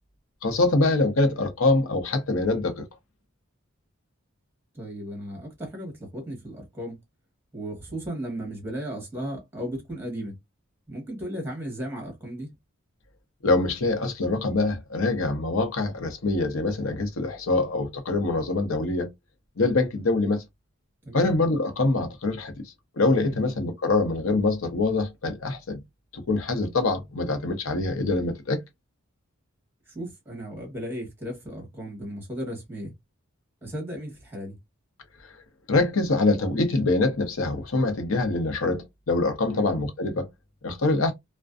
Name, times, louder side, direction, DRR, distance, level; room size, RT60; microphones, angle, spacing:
voice 1, 0.4-2.9 13.4-19.1 19.6-20.4 21.1-22.5 23.0-25.8 26.1-28.6 35.7-40.3 40.6-41.1, left 2 dB, 75° left, 0.7 m, -24 dB
voice 2, 4.7-7.0 7.5-10.3 10.9-12.5 21.0-21.3 23.3-23.5 29.9-32.9 33.6-34.6 39.5-39.7, right 1 dB, 10° right, 1.1 m, -35 dB
2.5 x 2.2 x 2.3 m
head